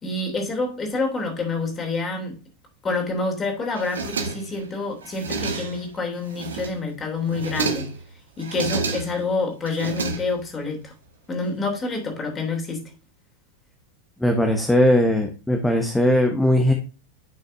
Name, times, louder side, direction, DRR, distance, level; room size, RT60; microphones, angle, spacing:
voice 1, 0.0-2.4 2.8-7.9 8.4-10.9 11.3-12.8, left 3 dB, 20° left, 3.0 m, -27 dB
sound 1, 3.7-4.6 5.0-5.9 6.3-6.9 7.3-8.0 8.4-9.3 9.7-10.6, right 4 dB, 70° right, 1.4 m, -30 dB
voice 2, 14.2-16.7, left 1 dB, 5° left, 1.1 m, -19 dB
10.0 x 6.4 x 2.7 m
figure-of-eight pair, 90°, 0 cm